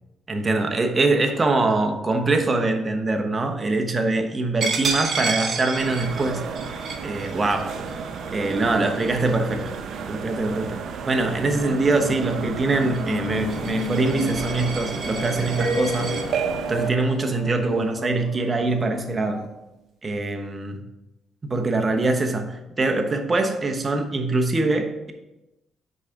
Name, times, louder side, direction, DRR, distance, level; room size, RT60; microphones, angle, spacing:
voice 1, 0.3-6.5 7.0-7.8 8.3-9.7 10.1-16.1 16.7-19.5 20.0-20.8 21.4-25.1, right 2 dB, 30° right, 4 dB, 1.0 m, -23 dB
Coin (dropping), 4.6-10.0 10.5-10.7 11.1-16.2, right 4 dB, 50° right, 1.7 m, -32 dB
sound 1, 5.7-16.9, right 5 dB, 70° right, 0.7 m, -31 dB
sound 2, 11.5-19.5, left 4 dB, 60° left, 1.0 m, -35 dB
6.2 x 4.8 x 5.1 m, 0.97 s
cardioid pair, 90°, 0 cm